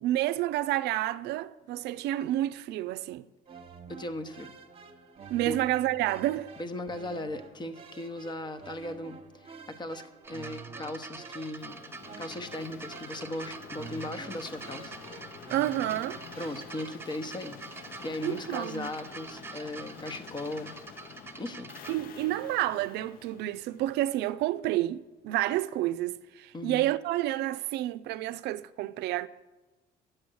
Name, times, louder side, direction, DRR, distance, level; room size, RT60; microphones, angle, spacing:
voice 1, 0.0-3.3 5.3-6.5 15.5-16.2 18.2-18.9 21.9-29.3, right 14 dB, 80° right, 0.4 m, -29 dB
sound 1, 3.5-17.2, right 5 dB, 35° right, 1.0 m, -49 dB
voice 2, 3.9-4.5 5.4-5.6 6.6-11.8 12.2-14.9 16.4-17.6 18.0-20.7 21.4-21.7 26.5-26.8, left 1 dB, 25° left, 0.9 m, -38 dB
sound 2, 10.2-21.9 22.9-23.0, right 3 dB, 15° right, 0.7 m, -45 dB
sound 3, 11.5-24.4, left 8 dB, 60° left, 0.7 m, -49 dB
9.5 x 7.8 x 6.2 m
cardioid pair, 110°, 17 cm